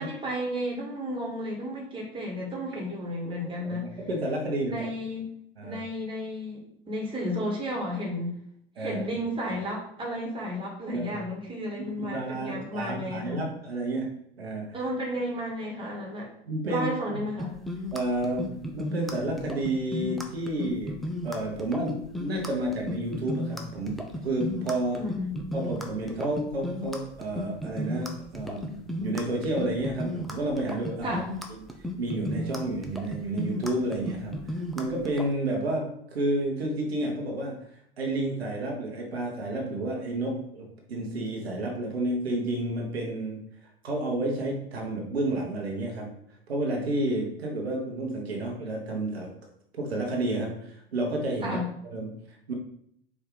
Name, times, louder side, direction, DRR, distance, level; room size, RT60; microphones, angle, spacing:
voice 1, 0.0-3.9 4.6-5.3 5.6-8.4 8.8-13.4 14.7-16.3 16.7-17.5 24.9-25.5 31.0-31.3 51.4-51.7, equal, 15° right, -2 dB, 1.6 m, -33 dB
voice 2, 3.6-4.9 5.6-5.8 8.8-9.0 10.9-11.2 11.8-14.7 16.4-16.9 17.9-21.0 21.2-25.1 25.5-31.2 31.5-31.7 32.0-37.7 38.0-46.2 46.5-49.3 49.8-51.6 51.8-52.5, right 1 dB, 80° right, 0 dB, 1.0 m, -31 dB
sound 1, 17.4-35.3, left 1 dB, ahead, 0.5 m, -34 dB
4.6 x 2.7 x 3.8 m, 0.71 s
figure-of-eight pair, 80°, 31 cm